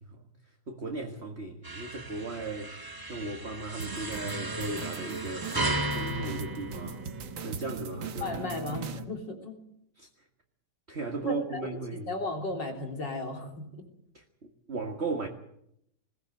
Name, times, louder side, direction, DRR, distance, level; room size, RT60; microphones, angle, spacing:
voice 1, 0.0-0.3 0.7-2.8 3.1-7.0 7.4-8.4 10.0-10.1 10.9-12.2 14.1-15.3, right 3 dB, 35° right, 1.8 m, -36 dB
sound 1, 1.6-7.4, right 2 dB, 15° right, 0.8 m, -35 dB
sound 2, 3.8-9.0, right 4 dB, 80° right, 2.0 m, -39 dB
voice 2, 8.2-9.6 11.2-11.6 12.1-13.7, left 2 dB, 65° left, 4.1 m, -35 dB
20.0 x 18.0 x 7.8 m
omnidirectional pair, 2.1 m